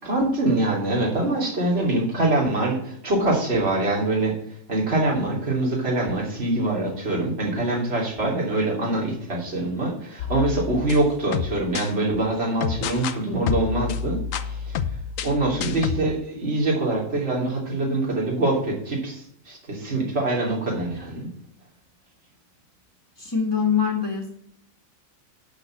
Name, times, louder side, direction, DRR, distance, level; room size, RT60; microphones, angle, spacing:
voice 1, 0.0-14.8 15.2-21.3, right 2 dB, 50° right, -3 dB, 3.4 m, -24 dB
sound 1, 10.2-11.9 12.6-13.2 13.5-16.0, left 7 dB, 75° left, 1.1 m, -29 dB
voice 2, 23.2-24.3, left 6 dB, 15° left, 1 dB, 1.9 m, -23 dB
11.5 x 4.1 x 7.6 m, 0.70 s
omnidirectional pair, 1.4 m